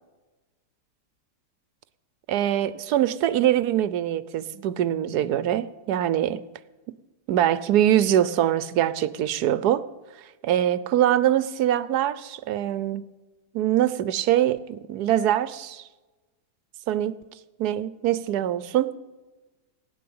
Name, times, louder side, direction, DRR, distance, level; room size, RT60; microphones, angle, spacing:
voice 1, 2.3-6.4 7.3-9.9 10.4-13.0 13.5-15.8 16.9-17.2 17.6-18.9, right 11 dB, 75° right, 1.1 m, -23 dB
16.5 x 9.2 x 8.6 m
omnidirectional pair, 1.8 m